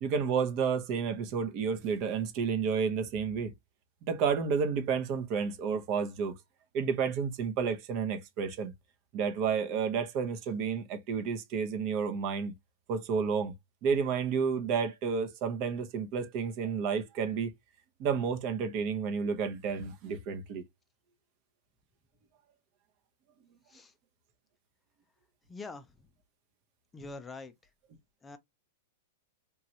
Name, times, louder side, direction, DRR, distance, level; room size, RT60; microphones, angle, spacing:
voice 1, 0.0-3.5 4.1-6.3 6.7-8.7 9.1-12.5 12.9-13.5 13.8-17.5 18.0-20.6, right 6 dB, 40° right, 0.7 m, -31 dB
voice 2, 25.5-25.9 26.9-27.5 28.2-28.4, left 3 dB, 15° left, 0.5 m, -44 dB
3.0 x 2.3 x 2.8 m
hypercardioid pair, 135°, 0 cm